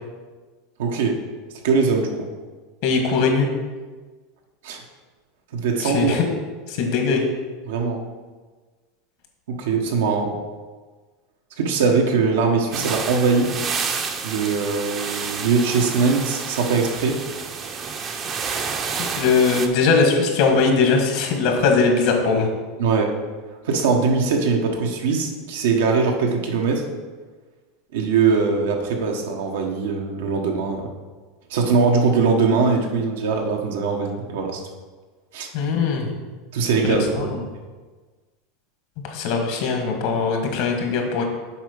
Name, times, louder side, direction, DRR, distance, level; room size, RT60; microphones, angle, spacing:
voice 1, 0.8-1.2 1.6-2.3 4.6-4.8 5.5-6.2 7.7-8.0 9.5-10.4 11.6-13.5 14.2-17.2 22.8-23.1 23.6-26.8 27.9-30.9 31.5-34.6 35.3-35.5 36.5-37.3, right 4 dB, 85° right, 2 dB, 1.2 m, -21 dB
voice 2, 2.8-3.5 5.8-6.2 6.7-7.2 19.0-22.5 35.5-36.1 36.9-37.4 39.1-41.2, left 4 dB, 65° left, 3 dB, 1.6 m, -20 dB
sound 1, 12.7-19.7, right 5 dB, 35° right, 0.7 m, -29 dB
7.2 x 4.7 x 5.2 m, 1.4 s
supercardioid pair, 125°, 0 cm